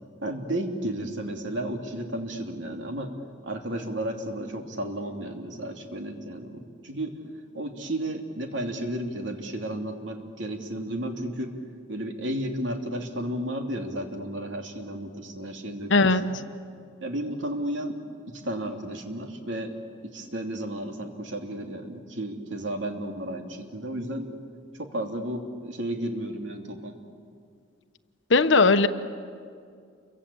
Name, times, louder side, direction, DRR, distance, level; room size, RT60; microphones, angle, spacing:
voice 1, 0.2-3.1 3.4-7.1 7.5-11.5 11.9-16.1 17.0-18.0 18.3-19.7 20.0-24.3 24.7-26.9, right 1 dB, 75° right, 3 dB, 3.0 m, -33 dB
voice 2, 15.9-16.2 28.3-28.9, left 3 dB, 70° left, 11 dB, 1.1 m, -18 dB
29.0 x 23.5 x 8.6 m, 2.2 s
head